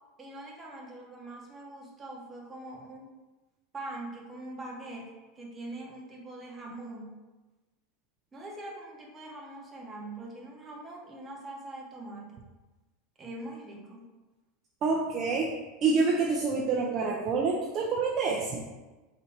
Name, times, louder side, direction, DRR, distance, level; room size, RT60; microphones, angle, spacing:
voice 1, 0.2-3.2 3.7-7.2 8.3-12.4 13.2-14.1, right 2 dB, 15° right, -2 dB, 0.8 m, -43 dB
voice 2, 14.8-18.7, right 4 dB, 35° right, -3 dB, 0.5 m, -27 dB
4.1 x 2.6 x 4.5 m, 1.2 s
supercardioid pair, 155°, 0 cm